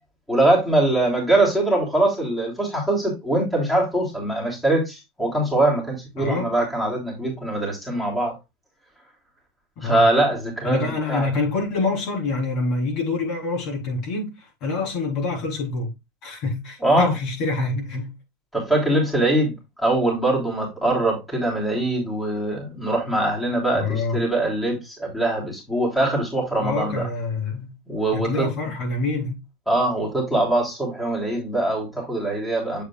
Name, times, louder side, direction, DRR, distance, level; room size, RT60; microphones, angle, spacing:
voice 1, 0.3-8.3 9.8-11.3 16.8-17.1 18.5-27.0 27.9-28.5 29.7-32.8, right 1 dB, 5° left, 3.2 m, -22 dB
voice 2, 6.2-6.5 9.8-10.1 10.6-15.9 16.2-18.1 23.8-24.2 26.6-27.8 28.1-29.4, left 3 dB, 50° left, 3.9 m, -26 dB
8.1 x 7.2 x 2.4 m
supercardioid pair, 130°, 0 cm